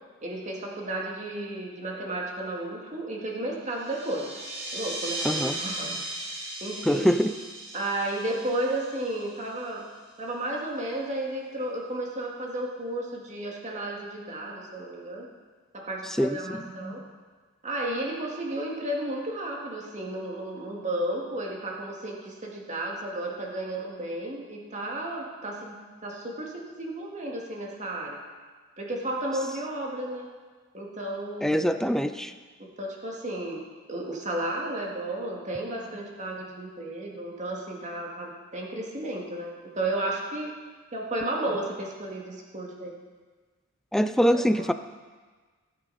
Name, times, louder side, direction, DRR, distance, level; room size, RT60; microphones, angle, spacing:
voice 1, 0.2-4.3 4.7-6.1 6.6-7.1 7.7-9.9 10.2-15.3 15.7-17.0 17.6-28.2 28.8-30.3 30.7-31.9 32.6-33.6 33.9-40.6 40.9-42.9 44.3-44.7, right 1 dB, 35° right, -1 dB, 2.1 m, -33 dB
sound 1, 3.7-9.8, right 1 dB, 60° right, 4.0 m, -37 dB
voice 2, 5.2-5.6 6.9-7.3 16.0-16.7 31.4-32.3 43.9-44.7, equal, ahead, 9 dB, 0.4 m, -24 dB
17.0 x 9.0 x 4.2 m, 1.4 s
head